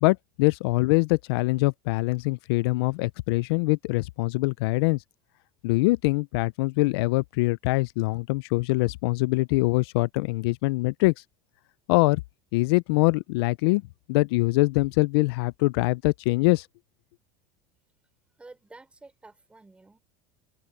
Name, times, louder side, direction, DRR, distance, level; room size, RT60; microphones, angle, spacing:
voice 1, 0.0-5.0 5.6-11.1 11.9-12.2 12.5-13.8 14.1-16.7, left 23 dB, 75° left, 0.4 m, -23 dB
voice 2, 18.4-20.0, right 3 dB, 10° right, 5.8 m, -50 dB
open air
supercardioid pair, 155°, 13 cm